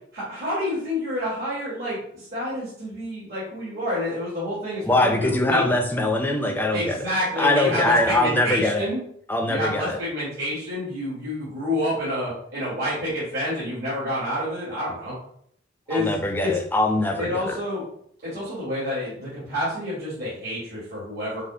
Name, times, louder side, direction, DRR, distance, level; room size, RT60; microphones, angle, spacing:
voice 1, 0.1-5.7 6.7-9.0 9.5-15.1 15.9-16.5 17.2-17.8 18.2-21.4, left 1 dB, 55° right, -9 dB, 1.7 m, -28 dB
voice 2, 4.8-7.1 7.4-8.9 9.3-10.0 15.9-17.6, left 2 dB, 10° left, 3 dB, 0.5 m, -22 dB
5.4 x 2.0 x 3.8 m, 0.66 s
head